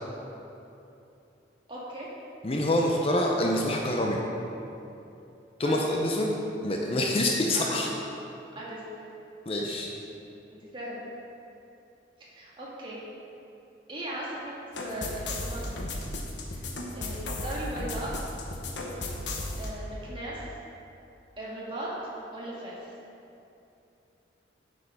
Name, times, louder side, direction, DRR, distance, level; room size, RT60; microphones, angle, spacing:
voice 1, 1.7-2.1 5.6-5.9 7.5-7.8 8.6-9.0 10.5-11.0 12.3-13.1 13.9-14.5 14.8-15.8 16.5-18.1 19.6-20.5 21.4-22.9, right 1 dB, 25° right, -6 dB, 1.7 m, -38 dB
voice 2, 2.4-4.2 5.6-6.3 6.6-7.9 9.5-9.9, left 1 dB, 30° left, 0 dB, 0.6 m, -26 dB
sound 1, 14.7-19.7, left 1 dB, 75° left, 1.0 m, -35 dB
7.7 x 6.5 x 5.4 m, 2.8 s
head